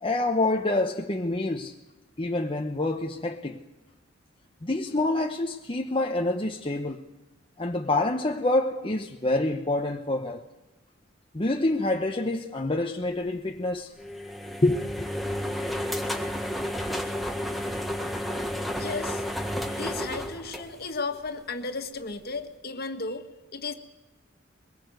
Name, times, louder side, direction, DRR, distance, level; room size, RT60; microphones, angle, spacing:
voice 1, 0.0-1.7 2.2-3.6 4.6-7.0 7.6-10.4 11.3-13.9 14.6-15.1, left 2 dB, 30° left, 1.0 m, -27 dB
sound 1, 14.0-21.3, equal, ahead, 1.7 m, -31 dB
voice 2, 18.7-19.2 19.7-23.3 23.5-23.7, left 3 dB, 55° left, 1.8 m, -34 dB
22.5 x 22.0 x 8.0 m
head